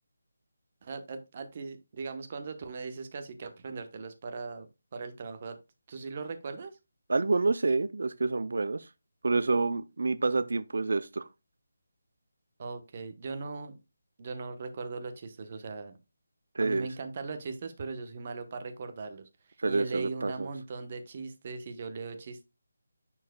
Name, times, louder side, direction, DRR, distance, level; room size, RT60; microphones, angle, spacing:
voice 1, 0.8-5.6 5.9-6.7 12.6-13.7 14.2-16.0 16.6-22.4, right 4 dB, 35° right, 1.0 m, -39 dB
voice 2, 7.1-8.9 9.2-11.3 16.6-16.9 19.6-20.5, right 3 dB, 70° right, 0.4 m, -28 dB
10.0 x 4.5 x 2.2 m
figure-of-eight pair, 170°, 0 cm